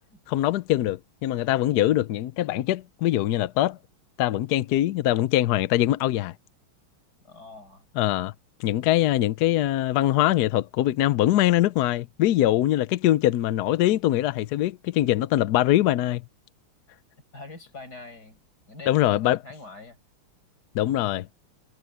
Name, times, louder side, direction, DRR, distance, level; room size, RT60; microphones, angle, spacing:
voice 1, 0.3-3.8 4.2-6.3 8.0-8.3 8.6-16.2 18.9-19.4 20.7-21.3, left 14 dB, 75° left, 0.9 m, -23 dB
voice 2, 7.2-7.8 17.3-18.4 18.7-20.0, left 3 dB, 50° left, 6.9 m, -44 dB
omnidirectional pair, 2.3 m